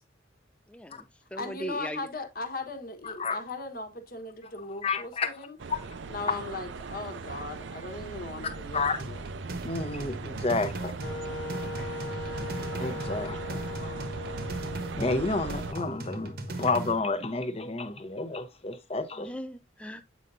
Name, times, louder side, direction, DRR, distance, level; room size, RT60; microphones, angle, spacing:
voice 1, 0.7-2.1 19.2-20.0, equal, 5° left, 0.3 m, -39 dB
voice 2, 1.4-5.6 6.1-9.3 11.7-11.9, left 3 dB, 50° left, 1.2 m, -38 dB
voice 3, 3.0-3.4 4.8-5.3 5.7-5.8 8.7-9.0 9.6-11.0 12.7-14.1 15.0-19.3, left 3 dB, 30° left, 0.8 m, -30 dB
sound 1, 5.6-15.7, right 4 dB, 75° right, 0.5 m, -39 dB
sound 2, 9.0-17.0, right 2 dB, 50° right, 0.9 m, -38 dB
Wind instrument woodwind instrument, 11.0-16.8, left 2 dB, 80° left, 1.4 m, -40 dB
8.1 x 5.5 x 2.5 m
head